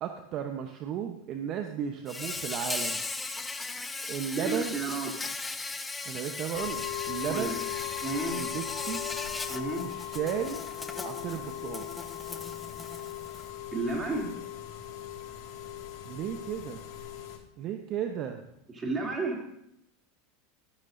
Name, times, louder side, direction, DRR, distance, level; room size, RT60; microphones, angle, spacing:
voice 1, 0.0-3.0 4.1-4.8 6.1-7.5 8.3-9.0 9.8-10.6 11.0-11.9 16.0-16.8 17.6-18.4, right 9 dB, 50° right, 5 dB, 0.9 m, -34 dB
Insect, 2.1-13.5, left 3 dB, 15° left, 0.8 m, -38 dB
voice 2, 4.4-5.2 7.3-7.6 8.0-8.4 9.5-9.9 13.7-14.4 18.7-19.5, right 3 dB, 25° right, 0 dB, 2.9 m, -32 dB
sound 1, 6.5-17.4, left 12 dB, 55° left, 4.1 m, -39 dB
13.0 x 12.5 x 2.7 m, 0.77 s
hypercardioid pair, 95°, 0 cm